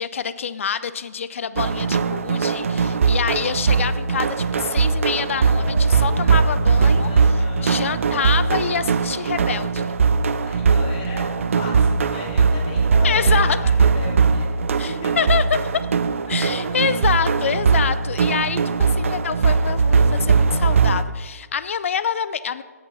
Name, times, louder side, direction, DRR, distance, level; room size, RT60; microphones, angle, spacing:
voice 1, 0.0-9.9 13.0-13.6 14.8-15.8 16.3-22.6, left 7 dB, 50° left, 14 dB, 0.4 m, -26 dB
sound 1, 1.6-21.0, right 5 dB, 50° right, 0.5 m, -20 dB
voice 2, 7.0-7.8 10.4-15.2 16.3-16.8, left 4 dB, 30° left, 1 dB, 1.8 m, -38 dB
sound 2, 8.9-17.7, left 2 dB, 65° left, 2.4 m, -43 dB
8.4 x 7.3 x 5.6 m, 1.4 s
figure-of-eight pair, 135°, 9 cm